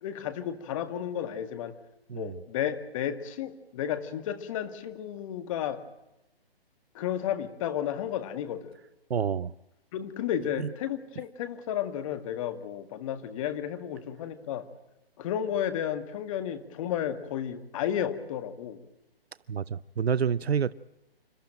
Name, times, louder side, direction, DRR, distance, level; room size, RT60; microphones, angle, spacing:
voice 1, 0.0-1.7 2.1-5.8 6.9-8.8 9.9-14.7 15.2-18.8, left 10 dB, 30° left, 1.9 m, -32 dB
voice 2, 9.1-9.5 10.6-10.7 19.5-20.7, right 7 dB, 80° right, 0.7 m, -28 dB
28.0 x 13.5 x 8.9 m
hypercardioid pair, 145°, 31 cm